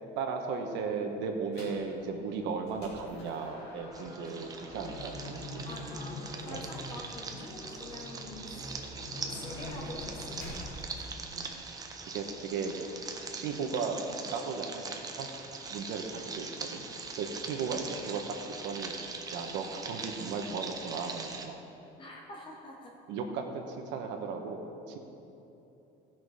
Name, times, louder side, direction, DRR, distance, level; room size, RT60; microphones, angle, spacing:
voice 1, 0.1-5.7 6.5-6.6 7.3-7.4 11.3-11.5 12.1-12.7 13.3-15.3 15.7-16.8 17.2-18.2 18.6-18.9 19.3-21.6 23.1-25.0, right 5 dB, 75° right, 4 dB, 1.2 m, -36 dB
sound 1, 1.5-1.9 2.3-10.7, left 1 dB, 60° left, 2.7 m, -44 dB
Sizzling Water, 3.9-21.5, right 4 dB, 20° right, 0.7 m, -42 dB
voice 2, 5.6-8.7 9.3-11.1 12.6-12.7 17.5-17.8 22.0-22.9, left 2 dB, 25° left, -1 dB, 1.0 m, -46 dB
16.0 x 6.1 x 4.9 m, 3.0 s
cardioid pair, 170°, 18 cm